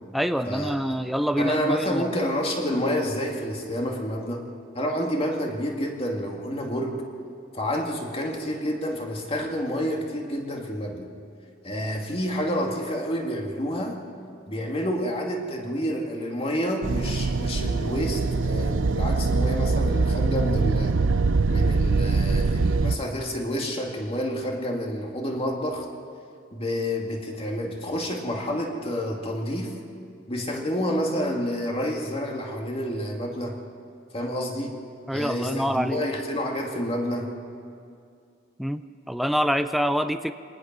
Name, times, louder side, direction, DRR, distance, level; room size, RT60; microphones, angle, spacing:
voice 1, 0.1-2.1 35.1-36.0 38.6-40.3, equal, ahead, 9 dB, 0.4 m, -26 dB
voice 2, 1.4-4.5 4.7-7.0 7.5-11.1 11.6-14.0 14.5-21.0 21.5-25.9 26.5-29.8 30.3-33.6 34.1-34.8 35.1-37.3, equal, 30° left, 1 dB, 2.3 m, -29 dB
sound 1, 16.8-23.0, right 3 dB, 75° right, 0.6 m, -23 dB
25.0 x 19.0 x 6.1 m, 2.4 s
head